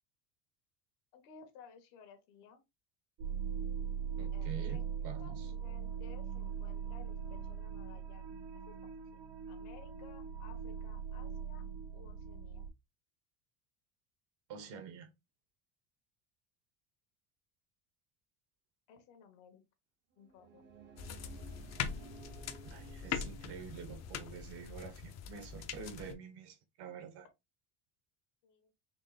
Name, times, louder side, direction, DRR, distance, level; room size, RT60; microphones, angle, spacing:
voice 1, 1.1-2.6 4.3-8.4 8.7-8.8 9.1-9.2 9.5-11.7 11.9-12.7 18.9-19.6 20.2-20.6 28.4-28.7, left 6 dB, 75° left, 1.5 m, -58 dB
sound 1, 3.2-12.7, right 7 dB, 90° right, 1.2 m, -40 dB
voice 2, 4.2-5.5 14.5-15.1 22.6-27.3, right 6 dB, 55° right, 1.0 m, -47 dB
sound 2, 20.1-24.8, right 4 dB, 25° right, 0.6 m, -56 dB
sound 3, 21.0-26.1, left 7 dB, 35° left, 0.6 m, -42 dB
4.3 x 2.9 x 3.3 m
cardioid pair, 150°, 46 cm